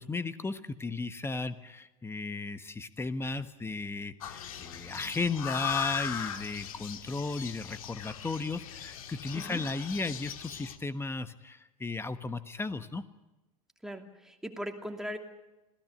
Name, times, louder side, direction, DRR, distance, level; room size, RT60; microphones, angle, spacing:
voice 1, 0.0-13.0, left 3 dB, 15° left, 12 dB, 1.3 m, -35 dB
sound 1, 4.2-10.8, left 8 dB, 70° left, 1.7 m, -38 dB
voice 2, 13.8-15.2, equal, ahead, 4 dB, 2.7 m, -39 dB
27.0 x 17.0 x 8.0 m, 1.0 s
hypercardioid pair, 85°, 19 cm